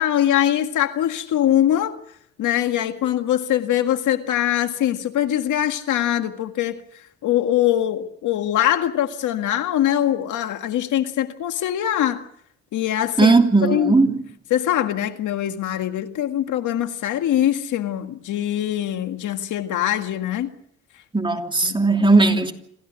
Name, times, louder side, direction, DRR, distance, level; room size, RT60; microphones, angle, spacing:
voice 1, 0.0-2.0 2.4-6.8 7.2-12.2 12.7-13.3 13.6-14.0 14.5-20.5 21.6-21.8, left 11 dB, 80° left, 1.9 m, -22 dB
voice 2, 13.2-14.2 21.1-22.5, right 3 dB, 15° right, 2.9 m, -17 dB
28.0 x 15.0 x 8.2 m
cardioid pair, 90°, 30 cm